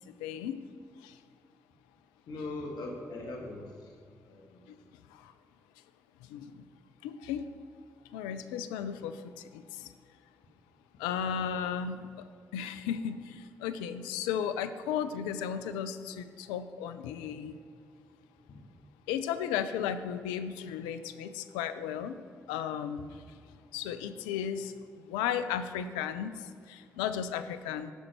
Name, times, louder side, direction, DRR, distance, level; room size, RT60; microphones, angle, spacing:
voice 1, 0.2-0.6 1.0-1.1 6.3-6.6 7.0-7.5 8.1-9.2 9.5-9.9 11.0-12.0 12.5-17.6 19.1-22.1 22.5-23.1 23.7-24.7 25.1-26.3 26.7-27.9, left 8 dB, 85° left, 11 dB, 0.4 m, -34 dB
voice 2, 2.3-3.8 4.2-4.6 11.2-11.4 18.5-18.6, left 2 dB, 70° left, 2 dB, 1.3 m, -40 dB
11.5 x 6.4 x 4.4 m, 2.1 s
hypercardioid pair, 40°, 7 cm